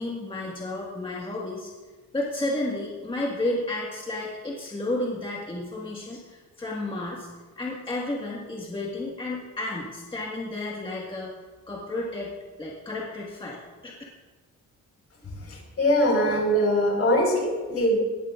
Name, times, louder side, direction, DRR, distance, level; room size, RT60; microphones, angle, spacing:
voice 1, 0.0-1.7 2.1-7.3 7.6-11.3 11.7-12.3 12.6-13.6 13.8-13.9, left 2 dB, 15° left, -4 dB, 1.7 m, -32 dB
voice 2, 15.5-18.0, equal, 50° left, 0 dB, 4.7 m, -22 dB
18.5 x 14.0 x 2.5 m, 1.4 s
cardioid pair, 130°, 31 cm